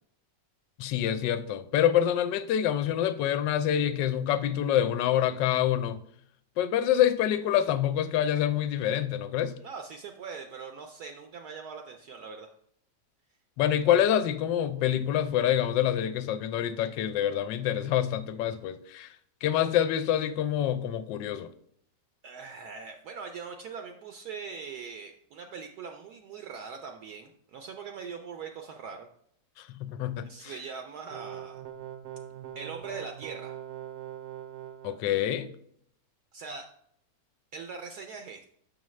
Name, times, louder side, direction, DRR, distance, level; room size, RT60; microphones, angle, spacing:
voice 1, 0.8-6.0 6.6-9.5 13.6-19.1 19.4-21.5 29.6-30.6 34.8-35.5, left 10 dB, 80° left, 1.2 m, -26 dB
voice 2, 9.6-12.5 22.2-29.1 30.2-31.6 32.5-33.6 36.3-36.7 37.5-38.5, right 5 dB, 70° right, 1.0 m, -41 dB
sound 1, 31.1-35.0, right 10 dB, 90° right, 1.3 m, -42 dB
6.4 x 6.2 x 3.1 m
omnidirectional pair, 1.9 m